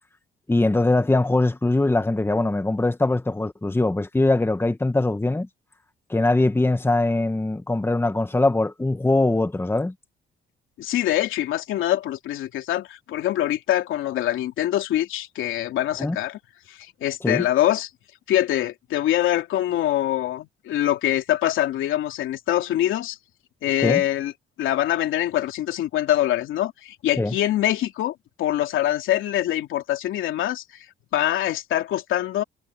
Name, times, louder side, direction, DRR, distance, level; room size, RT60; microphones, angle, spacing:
voice 1, 0.5-5.5 6.1-9.9 16.0-16.2 17.2-17.4 23.8-24.0 27.2-27.3, left 2 dB, 10° left, 1.5 m, -22 dB
voice 2, 10.8-16.4 16.7-17.9 18.3-23.2 23.6-24.3 24.6-30.6 31.1-32.4, left 13 dB, 85° left, 3.2 m, -24 dB
cardioid pair, 90°, 20 cm